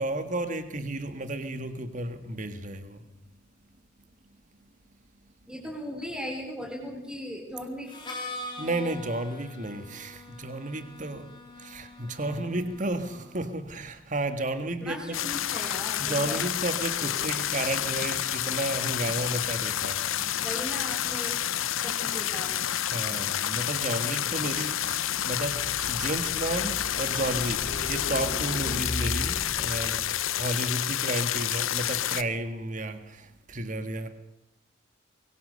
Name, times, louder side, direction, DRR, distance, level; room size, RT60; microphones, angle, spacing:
voice 1, 0.0-3.0 8.6-11.3 11.6-15.2 16.0-20.1 22.8-30.0 30.3-34.1, right 1 dB, 40° right, 1.8 m, -32 dB
voice 2, 5.5-7.9 14.8-16.5 17.0-17.3 20.4-21.4 21.8-22.6 28.6-28.9, left 1 dB, 5° right, 4.3 m, -38 dB
Harmonica, 7.9-13.6, left 2 dB, 20° left, 3.7 m, -43 dB
sound 1, 15.1-32.2, left 11 dB, 85° left, 0.8 m, -29 dB
Car passing by, 25.0-30.4, left 1 dB, 55° left, 5.0 m, -37 dB
24.5 x 22.5 x 6.9 m
head